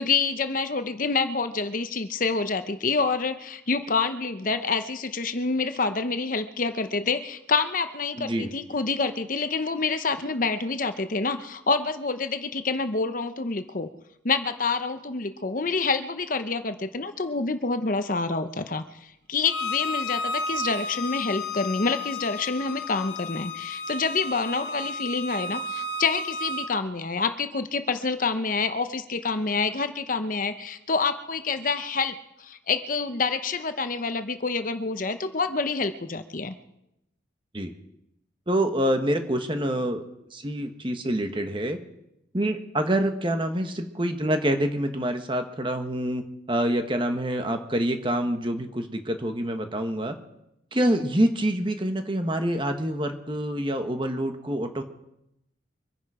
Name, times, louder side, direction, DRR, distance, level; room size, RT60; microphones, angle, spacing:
voice 1, 0.0-13.9 14.2-36.5 50.9-51.1, left 4 dB, 45° left, 9 dB, 0.8 m, -27 dB
voice 2, 8.2-8.5 37.5-37.7 38.5-40.0 40.3-41.8 42.3-46.2 46.5-50.1 50.7-54.8, right 1 dB, 25° right, 6 dB, 1.4 m, -26 dB
Bowed string instrument, 19.4-26.7, left 2 dB, 65° left, 1.3 m, -32 dB
24.5 x 10.5 x 5.0 m, 0.85 s
head